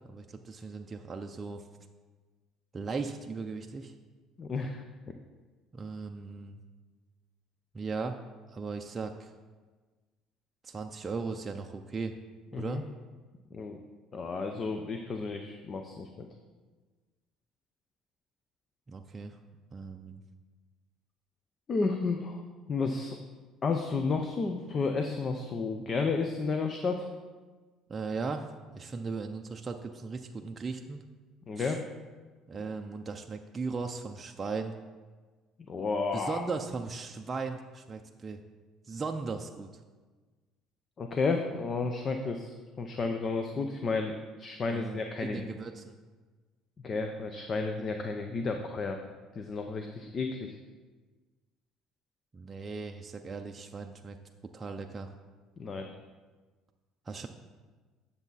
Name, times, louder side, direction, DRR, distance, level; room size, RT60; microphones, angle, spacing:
voice 1, 0.1-1.6 2.7-3.9 5.7-6.6 7.7-8.2 8.5-9.3 10.6-12.1 12.5-12.8 18.9-19.4 19.7-20.2 27.9-31.0 31.6-31.8 32.5-34.7 36.1-38.4 38.9-39.7 44.7-45.9 52.3-54.2 54.5-55.1 57.1-57.3, right 4 dB, 25° right, 3 dB, 0.5 m, -37 dB
voice 2, 4.4-4.8 12.5-12.8 13.5-13.8 14.1-16.3 21.7-22.4 22.7-23.2 23.6-27.1 31.5-31.8 35.7-36.4 41.0-45.5 46.8-49.0 49.3-50.6 55.6-55.9, left 4 dB, 35° left, 5 dB, 0.7 m, -32 dB
9.8 x 6.9 x 4.0 m, 1.4 s
cardioid pair, 110°, 0 cm